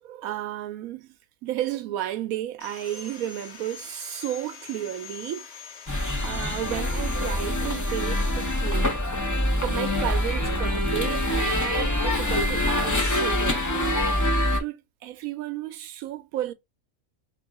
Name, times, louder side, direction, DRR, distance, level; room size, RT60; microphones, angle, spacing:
voice 1, 0.0-1.2 1.4-5.5 6.2-9.0 9.6-13.9 14.6-16.5, right 12 dB, 80° right, 1.0 m, -33 dB
Sawing, 2.6-8.6, left 7 dB, 50° left, 1.0 m, -44 dB
sound 1, 5.9-14.6, left 1 dB, 25° left, 0.4 m, -25 dB
3.0 x 3.0 x 3.5 m
omnidirectional pair, 1.5 m